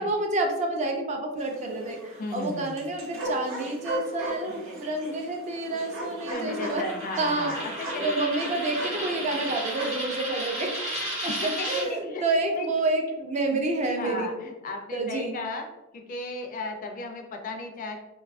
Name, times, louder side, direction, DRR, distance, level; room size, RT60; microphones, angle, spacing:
voice 1, 0.0-6.9 7.2-14.3 14.9-15.4, right 2 dB, 35° right, 2 dB, 0.4 m, -29 dB
sound 1, 1.4-10.0, right 1 dB, 75° right, 0.6 m, -37 dB
voice 2, 2.2-2.8 6.3-8.0 11.2-11.3 11.6-12.2 12.6-12.7 13.5-13.6 14.0-15.7 15.9-18.0, left 3 dB, 40° left, 5 dB, 0.3 m, -35 dB
Coin (dropping), 6.3-11.8, equal, 90° right, 1.0 m, -34 dB
2.5 x 2.3 x 2.3 m, 1.0 s
head